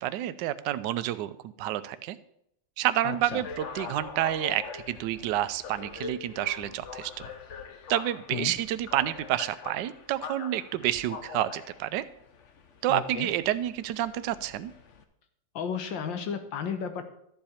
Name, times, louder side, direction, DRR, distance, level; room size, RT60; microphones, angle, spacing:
voice 1, 0.0-2.2 2.8-7.1 7.9-12.0 12.8-14.7, right 13 dB, 75° right, 13 dB, 1.2 m, -29 dB
voice 2, 3.0-3.5 8.3-8.5 12.9-13.3 15.6-17.0, left 7 dB, 85° left, 8 dB, 1.7 m, -33 dB
sound 1, 3.2-15.0, left 5 dB, 50° left, 1.0 m, -43 dB
13.0 x 7.7 x 4.3 m, 0.74 s
omnidirectional pair, 2.0 m